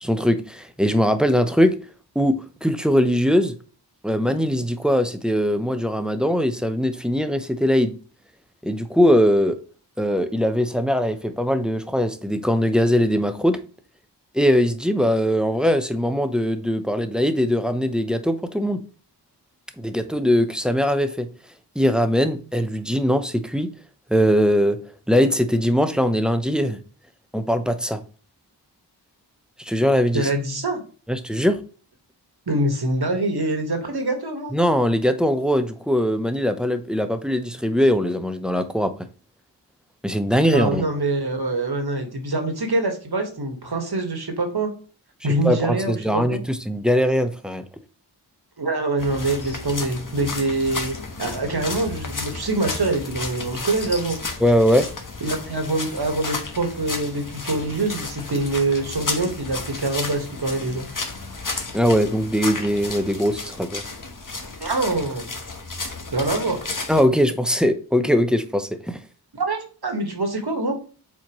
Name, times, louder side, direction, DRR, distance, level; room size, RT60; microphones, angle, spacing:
voice 1, 0.0-1.7 2.1-2.4 2.6-3.5 4.0-7.9 8.6-9.6 10.0-13.6 14.3-18.8 19.8-21.3 21.8-23.7 24.1-24.8 25.1-26.8 27.3-28.0 29.6-30.3 31.1-31.6 34.5-38.9 40.0-40.8 45.4-47.6 54.4-54.9 61.7-63.8 66.9-69.0, equal, ahead, 0.7 m, -21 dB
voice 2, 30.1-30.8 32.5-34.5 40.5-44.7 45.2-46.4 48.6-50.9 51.2-54.2 55.2-60.9 64.6-65.3 66.1-66.6 69.3-70.8, right 2 dB, 65° right, 1.6 m, -24 dB
sound 1, 49.0-67.0, left 3 dB, 50° left, 1.2 m, -33 dB
7.4 x 4.3 x 3.1 m
wide cardioid pair, 60°, 41 cm